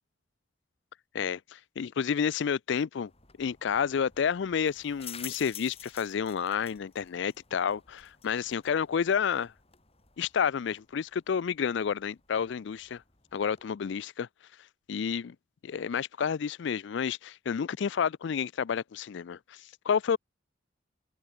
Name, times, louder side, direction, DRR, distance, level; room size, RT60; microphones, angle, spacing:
voice 1, 1.1-3.1 3.4-9.5 10.2-13.0 13.3-14.3 14.9-15.4 15.6-20.2, left 7 dB, 65° left, 0.4 m, -30 dB
sound 1, 3.1-13.7, left 9 dB, 30° left, 7.1 m, -50 dB
open air
head